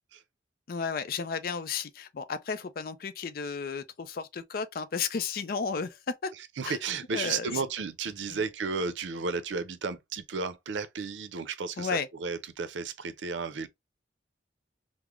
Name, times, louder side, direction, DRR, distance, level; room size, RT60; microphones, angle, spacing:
voice 1, 0.7-6.3 6.7-6.8 7.1-7.5 8.3-8.4 11.8-12.1, left 5 dB, 50° left, 0.4 m, -33 dB
voice 2, 6.4-13.7, right 4 dB, 85° right, 0.5 m, -33 dB
3.6 x 2.0 x 3.0 m
head